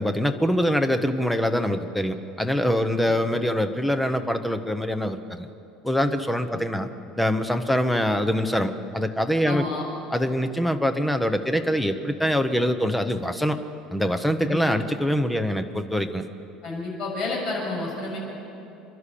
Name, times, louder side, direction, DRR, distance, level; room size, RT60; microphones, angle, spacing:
voice 1, 0.0-5.5 5.8-6.9 7.2-9.6 10.1-13.6 13.9-16.2, equal, 5° left, 9 dB, 0.8 m, -24 dB
voice 2, 9.4-9.9 14.5-14.6 16.6-18.2, left 3 dB, 40° left, -3 dB, 6.6 m, -30 dB
28.0 x 11.5 x 8.4 m, 2.8 s
cardioid pair, 175°, 0 cm